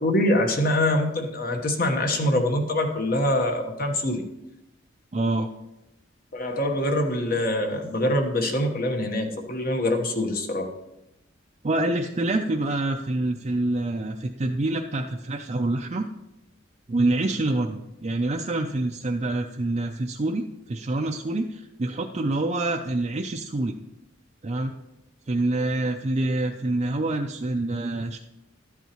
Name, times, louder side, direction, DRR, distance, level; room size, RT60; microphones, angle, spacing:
voice 1, 0.0-4.2 6.3-10.7, left 1 dB, 50° left, 4 dB, 1.2 m, -24 dB
voice 2, 5.1-5.5 11.6-16.1 16.9-23.8 24.4-24.7 25.3-28.2, right 2 dB, 35° right, 2 dB, 0.4 m, -26 dB
12.5 x 8.1 x 3.0 m, 0.91 s
head